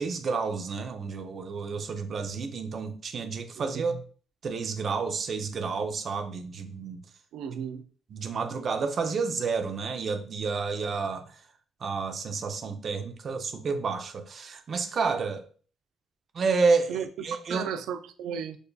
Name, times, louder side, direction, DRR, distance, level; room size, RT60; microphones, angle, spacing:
voice 1, 0.0-3.9 4.4-7.0 8.1-11.2 11.8-15.5 16.3-17.7, right 4 dB, 50° right, 0.7 m, -30 dB
voice 2, 3.6-4.0 7.3-7.8 16.9-17.1 17.5-18.6, right 8 dB, 85° right, 0.4 m, -34 dB
6.4 x 2.7 x 2.3 m
cardioid pair, 90°, 0 cm